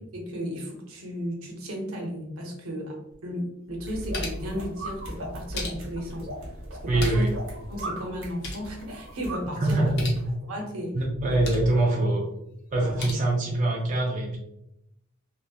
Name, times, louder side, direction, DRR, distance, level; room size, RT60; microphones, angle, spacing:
voice 1, 0.1-6.3 6.8-7.3 7.7-10.0 10.5-11.0 11.7-11.8 12.8-13.1, equal, 85° right, 0 dB, 0.7 m, -34 dB
sound 1, 3.1-3.2 3.7-4.6 5.3-6.1 6.8-7.4 7.7-7.8 8.1-8.7 9.8-10.2 11.1-11.7 12.7-13.1, left 1 dB, 55° left, 0.6 m, -35 dB
sound 2, 3.9-10.3, right 1 dB, 65° right, 1.0 m, -39 dB
voice 2, 6.9-7.3 9.5-10.1 10.9-12.2 12.7-14.4, right 2 dB, 35° right, -2 dB, 0.4 m, -24 dB
2.8 x 2.1 x 2.3 m, 0.83 s
head